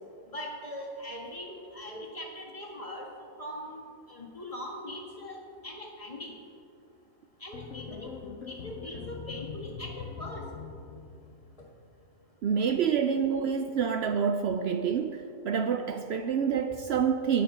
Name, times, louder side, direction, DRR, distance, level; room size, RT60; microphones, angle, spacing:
voice 1, 0.3-3.1 3.4-5.4 5.6-6.3 7.4-8.1 8.5-10.4, equal, 20° left, -2 dB, 1.7 m, -41 dB
sound 1, 7.5-11.8, left 7 dB, 60° left, 0.9 m, -42 dB
voice 2, 12.4-17.4, right 7 dB, 90° right, 7 dB, 0.5 m, -27 dB
13.5 x 9.2 x 4.4 m, 2.4 s
omnidirectional pair, 1.7 m